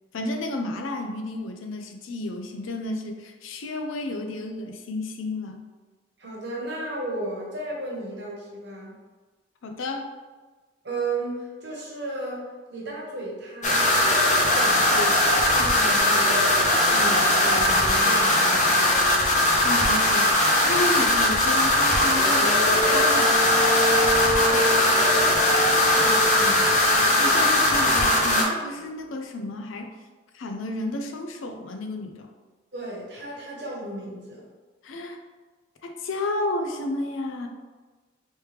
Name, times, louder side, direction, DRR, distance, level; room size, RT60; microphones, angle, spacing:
voice 1, 0.1-5.6 9.6-10.1 19.6-20.3 20.7-23.4 27.2-30.0 30.3-32.3 34.8-35.2 35.8-37.5, left 2 dB, 85° left, 5 dB, 0.5 m, -31 dB
voice 2, 6.2-8.9 10.8-16.6 16.8-18.9 24.2-26.7 32.7-34.5, right 2 dB, 60° right, -3 dB, 1.0 m, -35 dB
sound 1, 13.6-28.4, left 1 dB, 40° left, 0.6 m, -20 dB
sound 2, 16.0-16.1 16.5-20.1 21.8-29.0, equal, 30° right, 0.8 m, -31 dB
3.2 x 3.1 x 3.2 m, 1.3 s
head